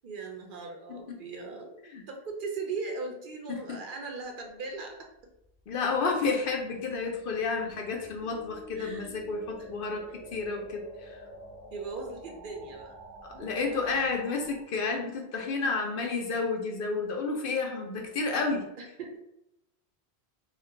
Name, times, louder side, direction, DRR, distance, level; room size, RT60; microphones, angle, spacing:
voice 1, 0.0-1.7 2.1-5.1 6.0-6.1 8.7-9.2 9.6-9.7 11.7-13.0 13.3-13.5 18.8-19.2, right 4 dB, 60° right, 2 dB, 0.7 m, -39 dB
sound 1, 5.3-14.6, equal, 10° right, 0.9 m, -49 dB
voice 2, 5.7-11.2 13.4-18.7, left 4 dB, 65° left, 2 dB, 0.7 m, -31 dB
2.4 x 2.2 x 3.7 m, 0.83 s
omnidirectional pair, 1.0 m